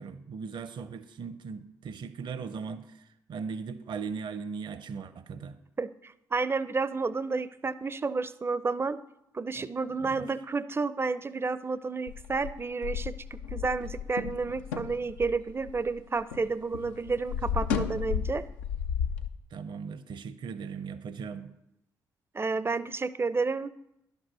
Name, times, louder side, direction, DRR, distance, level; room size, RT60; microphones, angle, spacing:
voice 1, 0.0-5.6 9.6-9.7 10.0-10.3 19.5-21.6, right 5 dB, 60° right, 12 dB, 0.8 m, -38 dB
voice 2, 5.8-9.0 9.3-18.4 22.3-23.7, right 4 dB, 25° right, 16 dB, 0.5 m, -31 dB
sound 1, 12.1-16.5 16.7-19.3, left 7 dB, 90° left, 0.5 m, -33 dB
11.5 x 5.4 x 6.2 m, 0.85 s
hypercardioid pair, 45°, 9 cm